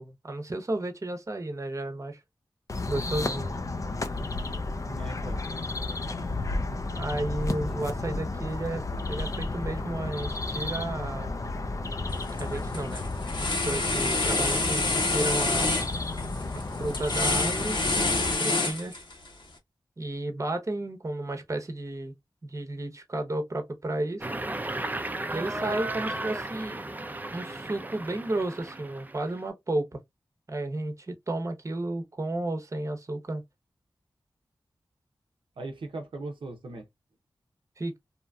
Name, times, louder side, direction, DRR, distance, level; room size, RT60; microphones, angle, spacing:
voice 1, 0.0-2.2 2.9-3.5 6.9-11.4 12.4-13.1 13.4-15.7 16.5-17.8 18.3-19.0 20.0-22.1 22.4-24.3 25.3-26.8 27.3-30.0 30.5-33.4 37.8-38.0, right 2 dB, 40° right, 0.7 m, -33 dB
sound 1, 2.7-18.3, left 2 dB, 40° left, 0.4 m, -32 dB
voice 2, 4.9-5.4 7.4-8.1 35.6-36.9, right 2 dB, 85° right, 0.6 m, -40 dB
sound 2, 12.1-12.4 12.7-19.3, left 3 dB, 70° left, 0.9 m, -27 dB
sound 3, 24.2-29.4, right 2 dB, 20° right, 0.4 m, -35 dB
2.8 x 2.5 x 2.2 m
wide cardioid pair, 60°, 8 cm